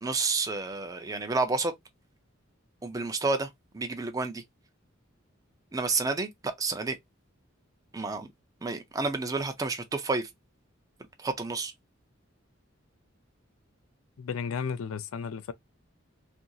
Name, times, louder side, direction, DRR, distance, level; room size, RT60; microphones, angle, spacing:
voice 1, 0.0-1.7 2.8-4.4 5.7-7.0 7.9-8.3 8.6-10.3 11.2-11.7, right 3 dB, 15° right, 0.4 m, -30 dB
voice 2, 14.2-15.5, left 6 dB, 90° left, 0.4 m, -33 dB
2.8 x 2.6 x 2.3 m
head